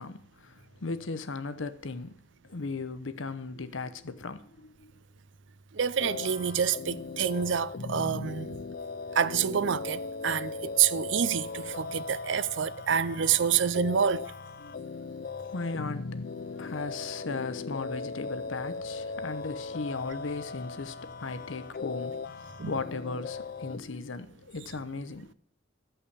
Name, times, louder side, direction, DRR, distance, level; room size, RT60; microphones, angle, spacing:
voice 1, 0.0-2.2 2.4-4.9 14.6-15.0 15.4-16.2 16.5-22.2 22.6-25.3, left 3 dB, 75° left, 0.9 m, -37 dB
voice 2, 5.7-8.6 9.1-14.3 22.6-22.7, right 8 dB, 65° right, 0.5 m, -27 dB
sound 1, 6.0-23.8, left 4 dB, 50° left, 0.4 m, -38 dB
14.0 x 5.6 x 8.6 m
head